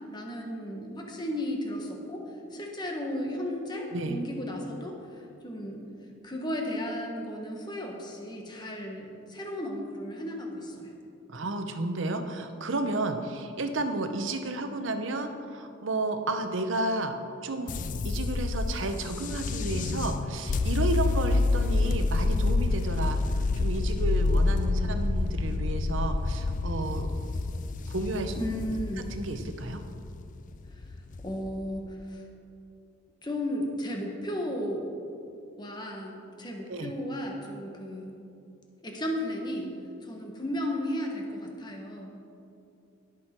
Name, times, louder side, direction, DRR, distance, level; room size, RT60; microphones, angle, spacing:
voice 1, 0.0-2.2 2.5-5.8 6.2-10.9 28.4-29.1 30.7-30.9 31.2-32.2 33.2-34.9 35.6-38.2 38.8-39.7 40.0-42.1, equal, 20° left, 1 dB, 1.4 m, -34 dB
voice 2, 11.3-17.2 17.4-17.7 18.0-23.2 23.5-27.1 27.9-28.3 29.1-29.8 36.7-36.9, right 2 dB, 65° right, 7 dB, 0.8 m, -32 dB
sound 1, 17.7-31.9, left 3 dB, 40° left, 0.4 m, -28 dB
18.0 x 6.2 x 4.5 m, 2.6 s
head